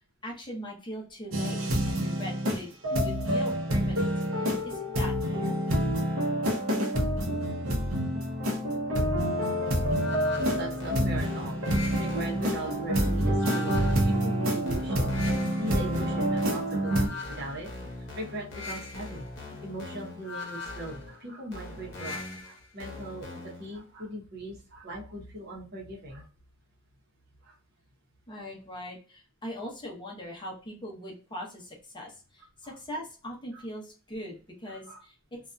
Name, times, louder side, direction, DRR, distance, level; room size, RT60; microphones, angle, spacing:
voice 1, 0.2-2.7 3.0-4.1 4.4-5.6 28.3-35.4, equal, 25° left, -1 dB, 0.7 m, -41 dB
sound 1, 1.3-17.1, equal, 85° right, 0.7 m, -27 dB
sound 2, 9.9-23.7, left 3 dB, 60° left, 0.9 m, -41 dB
voice 2, 10.5-11.7 12.0-15.2 15.6-17.7 18.2-19.2 19.6-26.2 27.4-27.6 32.6-32.7 33.5-33.6 34.7-35.0, right 1 dB, 55° right, -2 dB, 0.8 m, -40 dB
2.6 x 2.3 x 2.2 m, 0.36 s
head